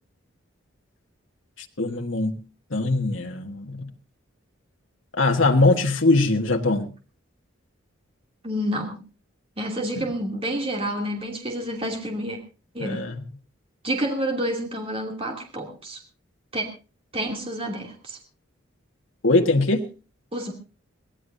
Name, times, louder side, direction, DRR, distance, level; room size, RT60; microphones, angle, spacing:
voice 1, 1.8-2.4 2.7-3.9 5.1-6.9 10.0-10.1 12.8-13.2 19.2-19.9, left 2 dB, 65° left, 1.6 m, -21 dB
voice 2, 8.4-9.0 9.6-12.4 12.7-13.0 13.8-16.0 16.5-16.7 17.1-18.2 20.3-20.5, right 1 dB, 25° right, 2.8 m, -29 dB
23.0 x 16.5 x 2.7 m
head